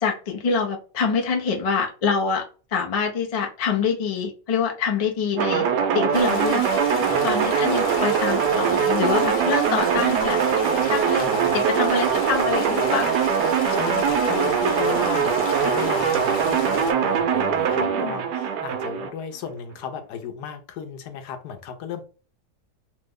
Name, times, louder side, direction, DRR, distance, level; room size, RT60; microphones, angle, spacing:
voice 1, 0.0-2.4 2.7-5.7 5.9-6.6 7.2-10.4 10.8-11.3 11.5-13.1 17.8-18.2, left 5 dB, 45° left, 0.4 m, -25 dB
sound 1, 5.4-19.1, right 7 dB, 85° right, 1.2 m, -22 dB
Stream, 6.1-16.9, left 4 dB, 65° left, 1.2 m, -34 dB
voice 2, 11.1-11.6 13.7-22.0, left 8 dB, 85° left, 1.2 m, -35 dB
3.2 x 2.1 x 3.5 m
omnidirectional pair, 1.7 m